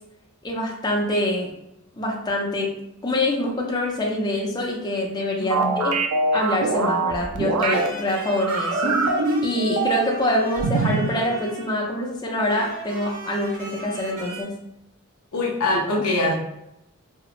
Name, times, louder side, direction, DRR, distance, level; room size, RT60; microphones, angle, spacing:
voice 1, 0.4-1.5 2.0-2.7 3.0-6.0 6.3-9.0 9.4-14.5, left 1 dB, 20° left, -1 dB, 0.4 m, -25 dB
voice 2, 5.4-5.9 15.3-16.3, left 2 dB, 80° left, -1 dB, 0.5 m, -23 dB
sound 1, 5.5-7.9 8.4-10.2 10.6-11.1, right 3 dB, 85° right, 0.3 m, -23 dB
sound 2, 7.7-12.0 12.5-14.4, right 1 dB, 40° right, 0.6 m, -38 dB
2.8 x 2.0 x 2.4 m, 0.85 s
head